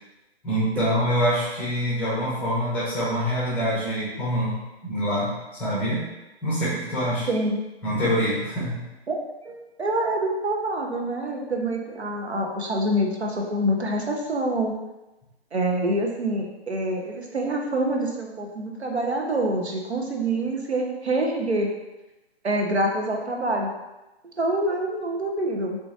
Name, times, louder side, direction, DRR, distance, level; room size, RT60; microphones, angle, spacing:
voice 1, 0.4-6.1 6.4-7.3 7.8-8.8, equal, 5° left, -8 dB, 0.6 m, -25 dB
voice 2, 7.3-7.6 9.1-9.2 9.4-14.8 15.5-21.7 22.4-23.7 24.4-25.8, right 1 dB, 85° right, 1 dB, 0.7 m, -26 dB
3.8 x 2.5 x 2.4 m, 1.0 s
figure-of-eight pair, 130°, 32 cm